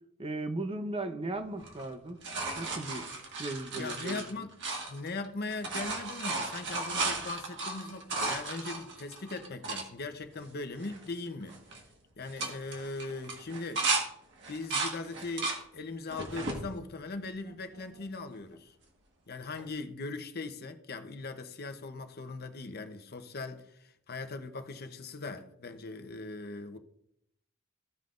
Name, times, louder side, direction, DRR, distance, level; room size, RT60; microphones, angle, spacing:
voice 1, 0.2-2.2 2.5-3.1 3.4-4.2, right 2 dB, 25° right, 0.7 m, -36 dB
sound 1, 1.6-5.3 5.5-9.9 10.4-10.5 10.8-11.2 11.5-11.8 12.2-14.0 14.4-15.6 16.1-16.6 17.2-18.0 19.6-19.7, right 3 dB, 60° right, 1.6 m, -35 dB
voice 2, 3.7-4.5 4.9-11.5 12.2-13.8 14.5-18.7 19.3-26.8, left 3 dB, 50° left, 0.8 m, -40 dB
16.0 x 5.7 x 2.5 m
head